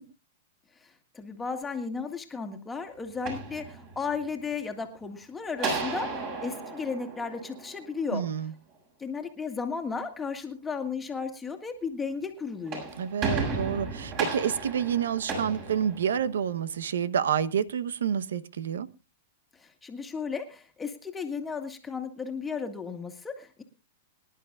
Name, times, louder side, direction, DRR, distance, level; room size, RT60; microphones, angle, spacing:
voice 1, 0.8-8.2 9.0-12.9 19.6-23.6, left 5 dB, 10° left, 1.8 m, -34 dB
sound 1, 3.1-4.3 5.6-8.0 12.4-16.5, right 4 dB, 40° right, 6.6 m, -34 dB
voice 2, 8.1-8.5 13.0-18.9, right 8 dB, 90° right, 0.9 m, -28 dB
25.0 x 11.0 x 2.4 m
hypercardioid pair, 140°, 0 cm